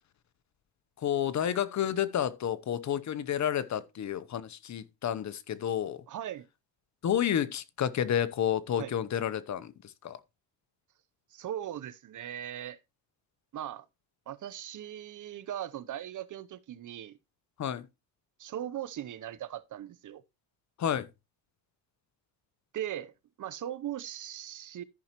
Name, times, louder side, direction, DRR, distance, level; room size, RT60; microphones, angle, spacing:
voice 1, 1.0-6.0 7.0-10.2 17.6-17.9 20.8-21.1, left 9 dB, 40° left, 0.9 m, -30 dB
voice 2, 6.1-6.5 8.8-8.9 11.3-12.8 13.5-13.9 14.3-17.2 18.4-20.2 22.7-23.1 23.4-24.8, right 11 dB, 45° right, 0.8 m, -39 dB
14.0 x 5.5 x 3.0 m
cardioid pair, 105°, 44 cm